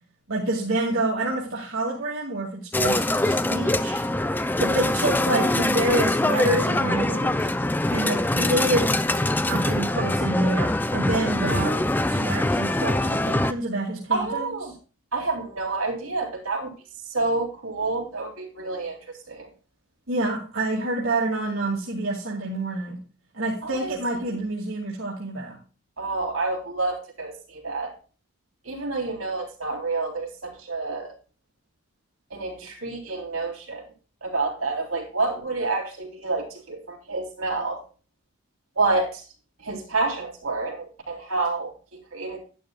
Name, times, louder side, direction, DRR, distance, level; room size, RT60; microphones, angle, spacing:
voice 1, 0.3-4.0 4.6-7.5 7.9-8.9 9.5-14.4 20.1-23.0 23.3-25.6, right 2 dB, 75° right, -4 dB, 2.5 m, -27 dB
sound 1, 2.7-13.5, left 1 dB, 10° left, 0.4 m, -23 dB
voice 2, 14.1-14.7 15.1-16.7 17.0-19.5 23.6-23.9 26.0-27.9 28.6-31.1 32.3-33.8 34.2-37.8 38.8-39.2 39.6-42.4, right 3 dB, 90° right, 0 dB, 3.6 m, -28 dB
11.5 x 11.5 x 2.4 m, 0.36 s
head